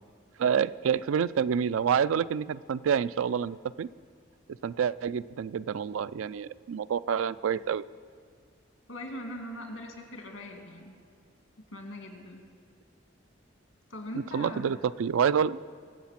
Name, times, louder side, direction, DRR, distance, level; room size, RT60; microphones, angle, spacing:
voice 1, 0.4-3.9 4.6-7.8 14.3-15.6, right 7 dB, 90° right, 17 dB, 0.4 m, -28 dB
voice 2, 8.9-11.0 11.7-12.4 13.9-14.8, left 1 dB, 85° left, 3 dB, 2.3 m, -41 dB
23.0 x 8.2 x 5.8 m, 2.1 s
head